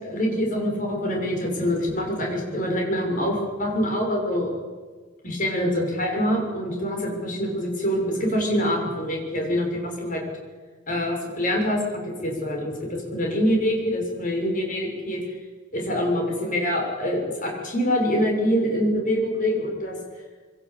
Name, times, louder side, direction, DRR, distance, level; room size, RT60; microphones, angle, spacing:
voice 1, 0.0-4.5 5.2-10.2 10.9-15.2 15.7-20.0, equal, 45° left, 0 dB, 6.7 m, -25 dB
23.5 x 18.0 x 8.6 m, 1.4 s
head